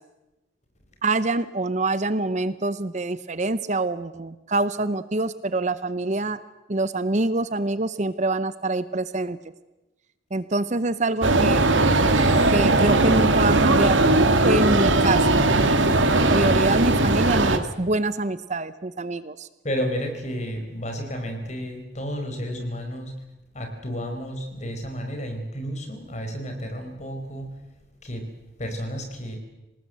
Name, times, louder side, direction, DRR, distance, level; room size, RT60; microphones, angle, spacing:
voice 1, 1.0-6.4 6.7-9.4 10.3-11.7 12.5-14.0 14.4-15.4 16.0-19.5, right 2 dB, 35° right, 14 dB, 0.7 m, -25 dB
sound 1, 11.2-17.6, right 2 dB, 75° right, 2.2 m, -19 dB
voice 2, 19.6-23.1 23.5-27.5 28.0-28.2 28.6-29.4, equal, 35° left, 5 dB, 5.0 m, -31 dB
26.5 x 19.0 x 8.1 m, 1.0 s
head